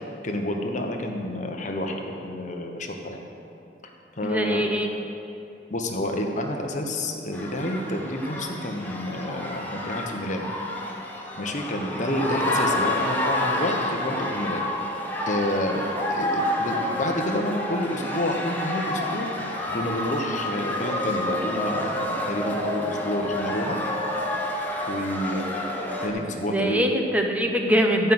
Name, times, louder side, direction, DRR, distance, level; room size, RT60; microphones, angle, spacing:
voice 1, 0.0-3.2 4.2-4.7 5.7-10.5 11.4-14.6 15.3-19.5 19.7-23.8 24.9-26.9, left 1 dB, 45° left, 2 dB, 1.1 m, -29 dB
voice 2, 4.2-4.9 26.4-28.1, equal, 10° right, 3 dB, 0.9 m, -23 dB
sound 1, 7.3-26.1, left 1 dB, 10° left, 1.3 m, -29 dB
13.0 x 5.5 x 7.8 m, 2.7 s
head